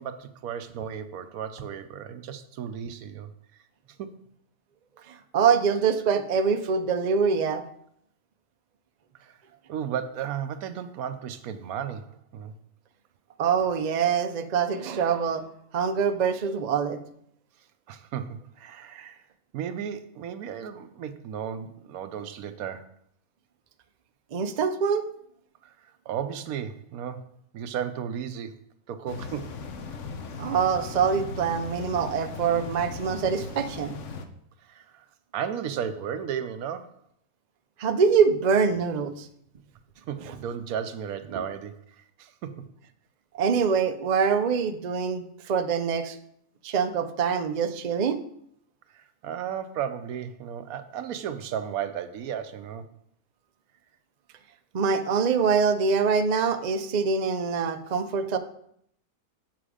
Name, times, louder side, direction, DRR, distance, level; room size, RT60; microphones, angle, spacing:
voice 1, 0.0-3.3 4.0-4.2 9.2-9.4 9.7-12.5 17.9-19.2 19.5-22.9 25.6-27.3 27.5-28.6 28.9-29.5 34.6-35.1 35.3-37.0 40.0-42.7 48.9-52.9, right 8 dB, 80° right, 11 dB, 1.1 m, -34 dB
voice 2, 5.3-7.6 13.4-15.4 15.7-17.0 24.3-25.0 30.4-33.9 37.8-39.3 43.4-46.2 46.6-48.2 54.7-58.4, right 6 dB, 50° right, 8 dB, 0.5 m, -24 dB
sound 1, 29.1-34.3, left 5 dB, 65° left, 1.0 m, -38 dB
7.5 x 6.0 x 4.9 m, 0.69 s
omnidirectional pair, 1.5 m